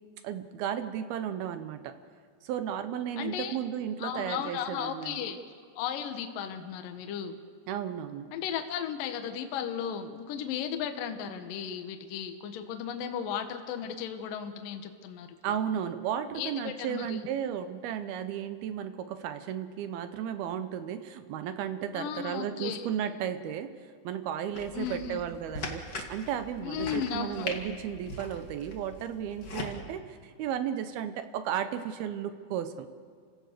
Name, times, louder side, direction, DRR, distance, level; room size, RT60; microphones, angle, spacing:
voice 1, 0.2-1.9 2.4-5.4 7.7-8.3 15.4-23.7 24.0-32.9, right 9 dB, 75° right, 9 dB, 2.4 m, -34 dB
voice 2, 3.2-3.6 4.0-5.4 5.8-7.4 8.3-15.6 16.4-17.3 21.9-22.9 24.7-25.2 26.6-27.5, left 8 dB, 65° left, 6 dB, 2.4 m, -35 dB
sound 1, 24.5-29.7, left 3 dB, 85° left, 0.8 m, -41 dB
29.5 x 17.0 x 6.7 m, 2.1 s
omnidirectional pair, 5.3 m